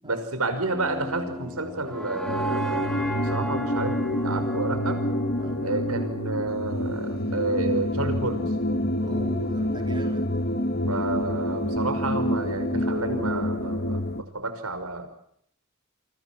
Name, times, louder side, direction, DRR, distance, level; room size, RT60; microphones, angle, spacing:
voice 1, 0.0-5.0 5.6-8.5 10.9-15.1, right 2 dB, 90° right, 9 dB, 5.9 m, -30 dB
sound 1, 0.7-6.8, right 1 dB, 5° left, 2.9 m, -35 dB
sound 2, 2.3-14.2, left 1 dB, 45° left, 1.8 m, -27 dB
voice 2, 5.4-5.7 9.0-10.3, right 1 dB, 20° right, 4 dB, 4.0 m, -40 dB
29.0 x 25.0 x 6.2 m, 0.69 s
head